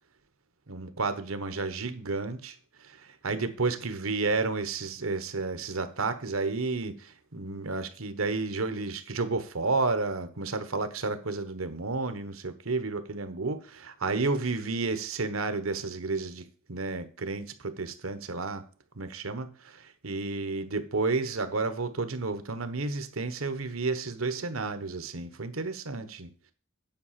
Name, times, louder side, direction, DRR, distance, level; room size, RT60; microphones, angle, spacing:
voice 1, 0.7-18.6 19.0-26.3, right 3 dB, 90° right, 1.2 m, -31 dB
9.4 x 5.0 x 7.5 m
head